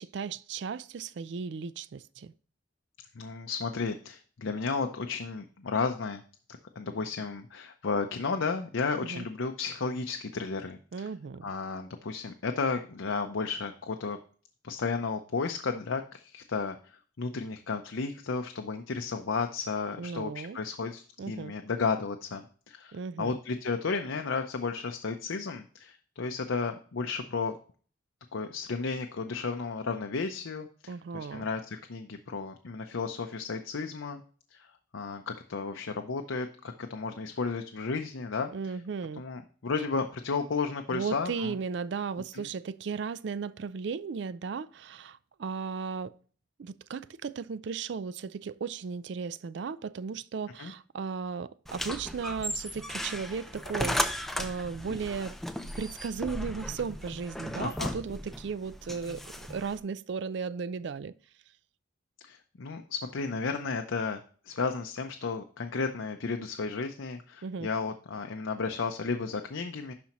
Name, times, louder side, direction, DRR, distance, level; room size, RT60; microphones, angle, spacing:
voice 1, 0.0-2.3 9.0-9.2 10.9-11.5 20.0-20.6 21.2-21.5 22.9-23.4 30.9-31.5 38.5-39.2 40.9-46.1 46.6-61.1 67.4-67.7, right 5 dB, 60° right, 0.4 m, -36 dB
voice 2, 3.1-6.2 6.8-11.1 11.4-14.2 14.6-27.6 28.3-34.2 34.5-38.8 39.2-41.6 42.3-42.5 50.6-50.7 57.6-57.9 62.2-69.9, left 4 dB, 85° left, 0.6 m, -33 dB
sound 1, 51.7-59.8, equal, ahead, 0.5 m, -36 dB
11.5 x 4.3 x 3.0 m
head